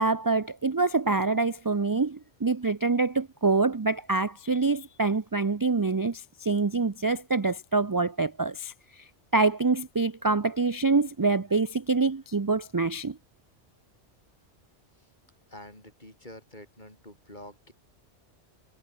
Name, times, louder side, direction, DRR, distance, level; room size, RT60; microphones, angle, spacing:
voice 1, 0.0-8.7 9.3-13.2, right 3 dB, 25° right, 0.5 m, -25 dB
voice 2, 15.5-17.7, left 1 dB, 40° left, 6.7 m, -47 dB
omnidirectional pair, 1.2 m